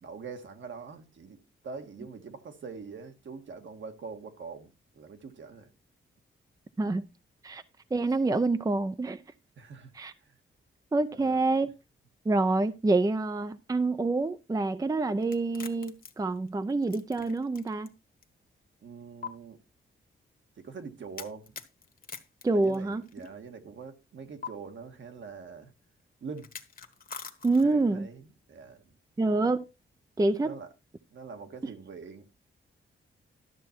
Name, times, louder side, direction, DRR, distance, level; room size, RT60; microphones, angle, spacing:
voice 1, 0.0-1.4 1.6-4.7 4.9-5.7 9.6-9.9 10.2-10.3 11.1-11.4 18.8-19.6 20.6-21.5 22.5-25.7 26.2-26.5 27.6-28.8 30.4-30.7 31.1-32.3, right 5 dB, 65° right, 1.6 m, -43 dB
voice 2, 7.9-9.2 9.9-10.1 10.9-11.7 12.3-17.9 22.4-23.0 27.4-28.1 29.2-29.6 30.2-30.6, right 3 dB, 15° right, 0.5 m, -27 dB
sound 1, 15.2-17.9 18.2-18.3 19.2-19.3 21.2-23.3 24.4-24.5 26.4-27.9, left 6 dB, 45° left, 1.3 m, -43 dB
12.5 x 6.8 x 4.4 m
wide cardioid pair, 125°, 21 cm